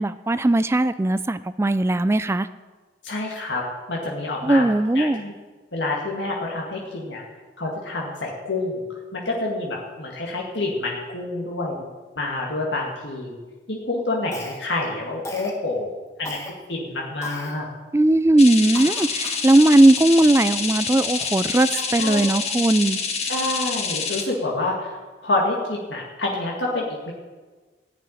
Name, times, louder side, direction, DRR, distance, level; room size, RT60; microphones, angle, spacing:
voice 1, 0.0-2.5 4.4-5.2 17.9-23.0, right 1 dB, 15° right, 14 dB, 0.3 m, -18 dB
voice 2, 3.0-3.6 3.9-4.6 4.9-5.3 5.7-7.2 7.6-8.8 9.1-11.9 12.2-13.4 13.7-15.9 16.2-16.4 16.7-17.7 21.9-22.3 23.2-27.1, left 2 dB, 65° left, -2 dB, 2.0 m, -27 dB
Cough, 14.3-14.8 15.2-15.6 16.2-16.5 17.2-17.6 18.1-18.2 18.7-19.5, left 1 dB, 15° left, 1.4 m, -36 dB
sound 1, 18.4-24.2, left 5 dB, 35° left, 1.5 m, -27 dB
14.5 x 6.2 x 10.0 m, 1.3 s
head